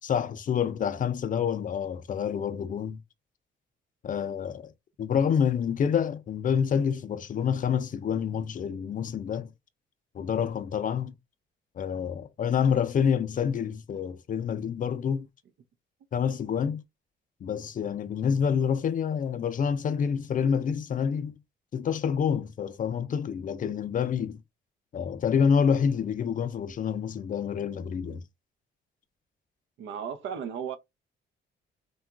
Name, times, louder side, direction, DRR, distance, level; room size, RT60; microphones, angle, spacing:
voice 1, 0.0-3.0 4.0-4.7 5.0-9.5 10.1-11.1 11.8-15.3 16.1-16.8 17.4-21.4 21.7-24.4 24.9-28.2, left 7 dB, 45° left, 0.4 m, -27 dB
voice 2, 29.8-30.8, right 7 dB, 75° right, 0.5 m, -35 dB
2.9 x 2.3 x 2.3 m
cardioid pair, 90°, 20 cm